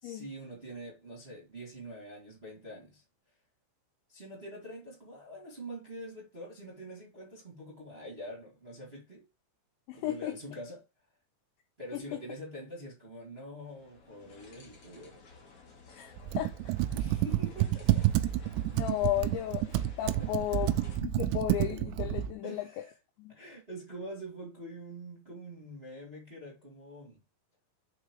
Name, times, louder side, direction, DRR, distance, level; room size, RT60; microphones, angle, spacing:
voice 1, 0.0-3.0 4.1-9.3 9.9-10.8 11.8-15.2 16.9-18.1 20.2-20.3 22.4-22.9 23.3-27.2, right 1 dB, 20° right, 1.6 m, -45 dB
voice 2, 9.9-10.4 11.9-12.2 15.9-16.6 18.7-22.7 23.2-23.3, left 14 dB, 75° left, 2.9 m, -34 dB
sound 1, 13.6-21.0, left 4 dB, 50° left, 1.9 m, -54 dB
Computer keyboard, 16.2-22.3, right 14 dB, 90° right, 2.6 m, -29 dB
6.4 x 4.9 x 4.8 m
omnidirectional pair, 5.7 m